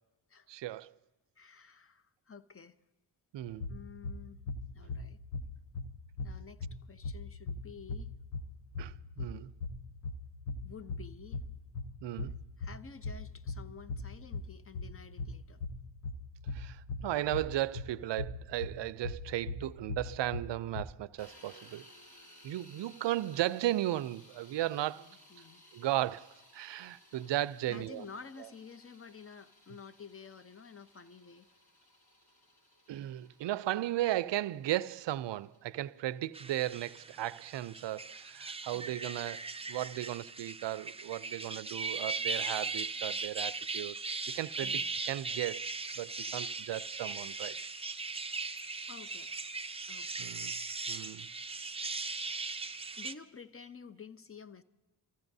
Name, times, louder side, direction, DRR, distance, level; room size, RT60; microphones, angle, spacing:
voice 1, 0.5-0.9 3.3-3.7 8.8-9.5 12.0-12.4 16.5-21.9 22.4-25.1 25.7-28.0 32.9-44.0 44.3-45.7 46.0-47.6 50.2-50.5 50.9-51.3, right 14 dB, 60° right, 0.6 m, -35 dB
voice 2, 1.4-2.8 3.7-4.4 4.7-5.2 6.2-8.1 10.6-11.5 12.6-15.6 25.0-25.6 27.7-31.5 38.7-39.0 44.6-45.0 48.9-49.3 49.9-50.3 52.9-54.6, left 6 dB, 25° left, 0.8 m, -51 dB
sound 1, 3.4-20.9, left 3 dB, 90° left, 0.9 m, -40 dB
sound 2, 21.2-39.1, left 1 dB, 50° left, 4.2 m, -61 dB
sound 3, 36.3-53.1, right 4 dB, 10° right, 0.6 m, -39 dB
26.5 x 14.5 x 2.7 m
cardioid pair, 60°, 50 cm